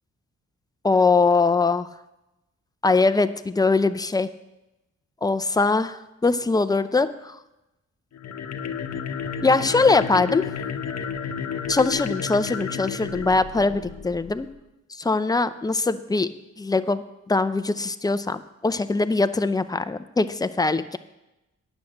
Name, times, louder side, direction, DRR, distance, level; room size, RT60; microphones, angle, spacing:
voice 1, 0.8-1.9 2.8-4.3 5.2-7.4 9.4-10.4 11.7-14.5 15.0-16.3 16.6-21.0, left 3 dB, 15° left, 11 dB, 0.5 m, -22 dB
sound 1, 8.1-14.4, left 7 dB, 65° left, 0.9 m, -31 dB
9.7 x 7.2 x 6.5 m, 0.94 s
cardioid pair, 75°, 29 cm